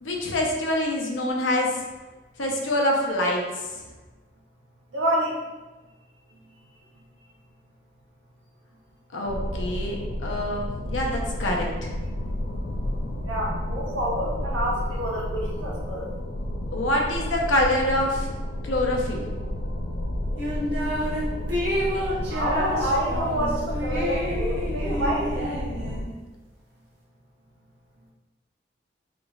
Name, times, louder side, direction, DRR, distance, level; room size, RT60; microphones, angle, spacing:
voice 1, 0.0-1.7 2.4-3.7 9.1-11.9 16.7-18.3 18.6-19.2, left 1 dB, 85° left, 0 dB, 0.7 m, -25 dB
voice 2, 4.9-5.4 13.2-16.1 22.3-25.3, right 1 dB, 80° right, -4 dB, 1.0 m, -28 dB
sound 1, 9.2-26.0, left 1 dB, 50° left, 0.4 m, -31 dB
sound 2, 20.4-21.2 21.5-26.1, equal, 60° right, 1.4 m, -29 dB
3.9 x 3.6 x 2.3 m, 1.2 s
head